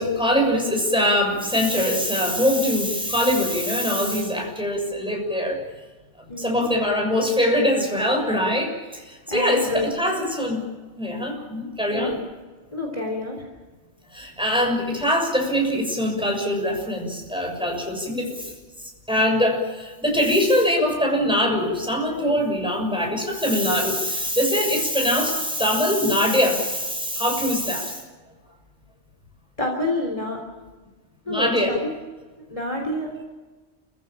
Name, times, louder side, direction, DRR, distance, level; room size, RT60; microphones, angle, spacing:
voice 1, 0.0-5.6 6.4-10.7 11.0-12.1 14.1-18.5 19.1-28.0 31.3-31.8, left 1 dB, 5° right, 1 dB, 6.6 m, -23 dB
voice 2, 6.3-6.7 9.3-9.9 11.9-12.2 12.7-13.4 22.2-22.4 29.6-30.4 31.3-32.0 32.4-33.2, left 2 dB, 25° left, 1 dB, 3.5 m, -28 dB
30.0 x 15.5 x 8.9 m, 1.3 s
omnidirectional pair, 1.3 m